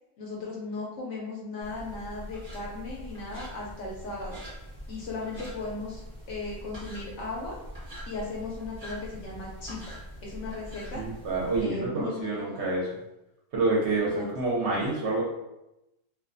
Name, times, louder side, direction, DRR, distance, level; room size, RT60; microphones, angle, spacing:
voice 1, 0.2-4.4 4.9-7.6 8.1-9.8 10.2-11.0 11.6-12.6 14.0-14.3, left 3 dB, 65° left, -3 dB, 0.8 m, -37 dB
sound 1, 1.6-11.6, equal, 25° right, 0.7 m, -43 dB
voice 2, 10.9-12.9 13.5-15.2, right 3 dB, 65° right, -4 dB, 0.8 m, -27 dB
2.3 x 2.2 x 2.4 m, 0.92 s
omnidirectional pair, 1.5 m